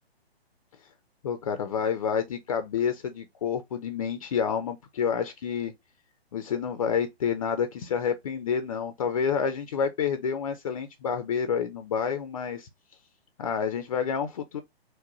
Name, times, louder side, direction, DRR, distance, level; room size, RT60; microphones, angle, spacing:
voice 1, 1.2-5.7 6.3-12.7 13.4-14.6, left 7 dB, 35° left, 0.5 m, -29 dB
4.8 x 2.1 x 3.8 m
figure-of-eight pair, 130°, 32 cm